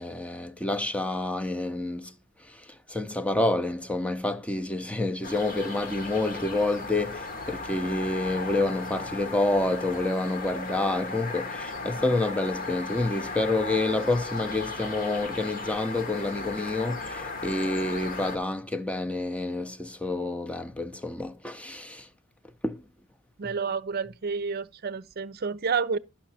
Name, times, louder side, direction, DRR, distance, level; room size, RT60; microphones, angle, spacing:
voice 1, 0.0-2.1 2.4-22.1 22.6-22.8, left 2 dB, 5° left, 0.6 m, -28 dB
sound 1, 5.2-18.4, left 3 dB, 45° left, 1.1 m, -36 dB
voice 2, 23.4-26.0, right 5 dB, 50° right, 0.6 m, -29 dB
12.0 x 5.6 x 4.1 m
head